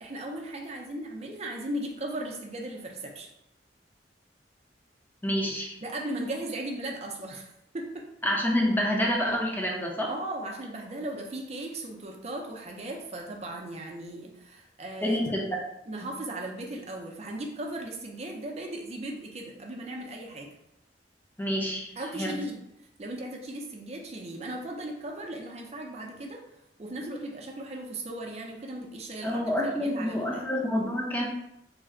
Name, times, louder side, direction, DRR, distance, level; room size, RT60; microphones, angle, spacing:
voice 1, 0.0-3.3 5.8-8.1 10.1-15.2 15.9-20.5 22.0-22.6 23.0-26.4 26.8-30.5, right 1 dB, 35° right, 1 dB, 0.5 m, -37 dB
voice 2, 5.2-5.7 8.2-10.1 15.0-15.6 16.0-16.1 21.4-21.9 22.1-22.4 29.2-31.2, equal, 10° left, -1 dB, 0.6 m, -28 dB
3.2 x 2.2 x 3.7 m, 0.82 s
head